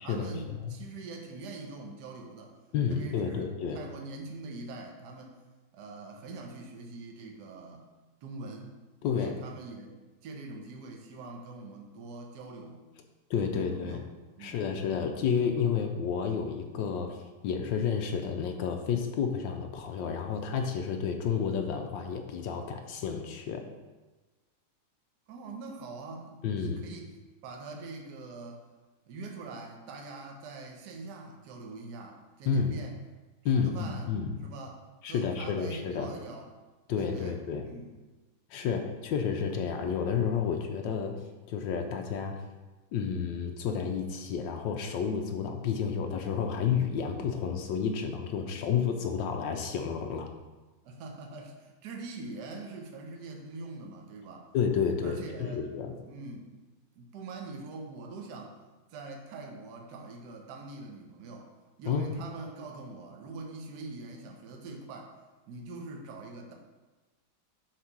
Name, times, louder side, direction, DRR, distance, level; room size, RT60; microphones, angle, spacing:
voice 1, 0.0-2.5 2.9-3.5 3.7-5.4 5.7-7.9 8.2-8.7 9.1-9.9 10.2-12.9 13.4-14.0 14.4-14.6 25.3-27.1 27.4-28.6 29.1-32.9 33.4-34.1 34.4-36.5 37.0-37.9 50.8-54.5 55.0-55.6 56.0-56.5 56.9-58.6 58.9-61.5 61.8-65.2 65.5-66.5, right 3 dB, 60° right, 2 dB, 1.3 m, -43 dB
voice 2, 2.7-3.8 9.0-9.3 13.3-14.0 14.4-17.2 17.4-23.6 26.4-26.8 32.4-32.8 33.4-34.3 35.0-36.1 36.9-37.7 38.5-41.2 41.5-42.4 42.9-50.3 54.5-55.9 61.9-62.1, left 6 dB, 70° left, 4 dB, 1.2 m, -30 dB
7.4 x 3.3 x 5.9 m, 1.2 s
omnidirectional pair, 2.4 m